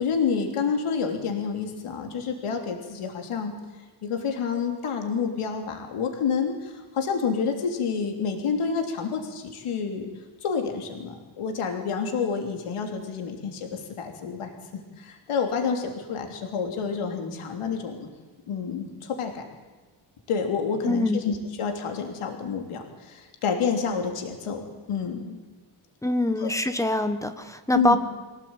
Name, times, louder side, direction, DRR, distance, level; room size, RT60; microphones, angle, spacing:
voice 1, 0.0-3.5 4.0-10.1 10.4-18.1 18.5-19.4 20.3-25.4 26.4-26.5 27.7-28.0, left 6 dB, 90° left, 4 dB, 3.3 m, -29 dB
voice 2, 20.8-21.2 26.0-28.0, left 1 dB, 5° left, 9 dB, 1.3 m, -24 dB
24.5 x 17.5 x 8.9 m, 1.3 s
wide cardioid pair, 175°, 49 cm